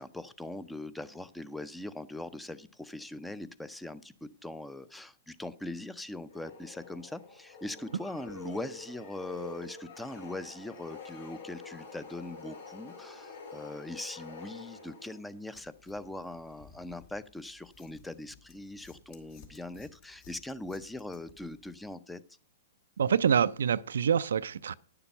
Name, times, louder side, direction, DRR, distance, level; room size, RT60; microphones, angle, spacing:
voice 1, 0.0-22.2, left 2 dB, 5° left, 0.6 m, -41 dB
sound 1, 6.3-15.4, left 3 dB, 70° left, 3.2 m, -47 dB
sound 2, 15.5-21.9, left 5 dB, 50° left, 2.0 m, -58 dB
voice 2, 23.0-24.7, right 7 dB, 75° right, 0.4 m, -26 dB
10.0 x 6.9 x 5.5 m
hypercardioid pair, 115°, 0 cm